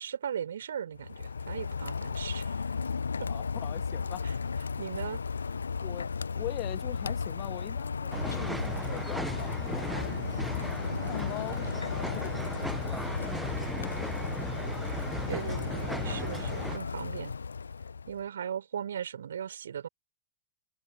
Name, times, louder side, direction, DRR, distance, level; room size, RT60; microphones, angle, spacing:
voice 1, 0.0-2.5 3.2-3.3 4.8-5.2 11.0-11.3 15.3-17.3 18.1-19.9, right 8 dB, 65° right, 4.8 m, -38 dB
Rain, 0.9-18.2, left 5 dB, 75° left, 0.9 m, -35 dB
voice 2, 3.3-4.3 5.8-10.2 11.1-14.7, left 26 dB, 40° left, 1.7 m, -43 dB
sound 1, 8.1-16.8, right 1 dB, 5° right, 1.0 m, -37 dB
figure-of-eight pair, 90°, 0 cm